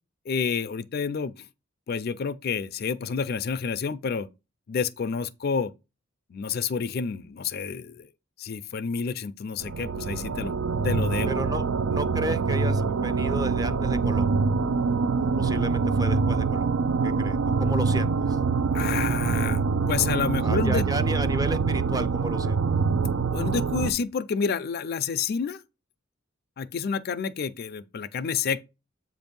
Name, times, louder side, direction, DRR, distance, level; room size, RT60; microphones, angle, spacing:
voice 1, 0.3-1.5 1.9-4.3 4.7-5.7 6.3-8.1 8.4-10.5 10.8-11.3 18.7-20.8 23.3-25.6 26.6-28.6, left 6 dB, 55° left, 0.4 m, -29 dB
sound 1, 9.6-23.9, right 4 dB, 85° right, 0.5 m, -25 dB
voice 2, 11.3-14.3 15.2-16.7 17.0-18.4 20.4-22.6, right 1 dB, 20° right, 0.5 m, -33 dB
7.7 x 2.6 x 5.2 m
head